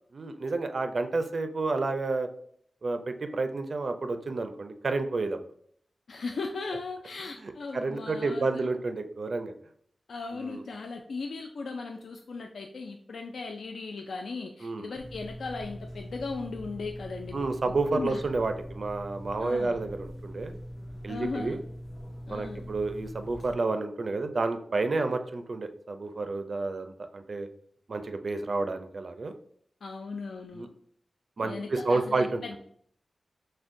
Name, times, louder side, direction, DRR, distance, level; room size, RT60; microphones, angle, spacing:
voice 1, 0.1-2.3 2.8-5.4 7.7-9.5 10.3-10.6 14.6-14.9 17.3-20.6 21.0-21.6 22.3-27.5 27.9-29.3 30.5-30.7 31.4-32.6, right 3 dB, 50° right, 8 dB, 0.4 m, -30 dB
voice 2, 6.1-8.7 10.1-18.2 19.4-19.8 21.1-21.6 22.3-22.7 29.8-30.7 31.4-32.6, left 4 dB, 75° left, 3 dB, 0.3 m, -37 dB
sound 1, 15.0-23.5, equal, 55° left, 0.7 m, -42 dB
6.1 x 2.1 x 2.5 m, 0.65 s
wide cardioid pair, 125°, 0 cm